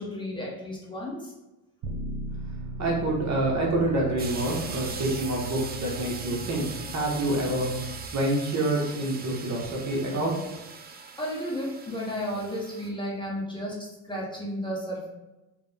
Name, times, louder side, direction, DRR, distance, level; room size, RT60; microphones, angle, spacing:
voice 1, 0.0-1.3 10.9-15.1, equal, 10° left, -5 dB, 1.2 m, -33 dB
Bass guitar, 1.8-8.1, right 1 dB, 70° right, 1.2 m, -38 dB
voice 2, 2.8-7.7 8.1-10.4, right 1 dB, 40° right, -3 dB, 1.2 m, -27 dB
sound 1, 4.2-12.9, right 5 dB, 25° right, 0.4 m, -41 dB
3.6 x 3.3 x 3.4 m, 1.0 s
cardioid pair, 100°, 43 cm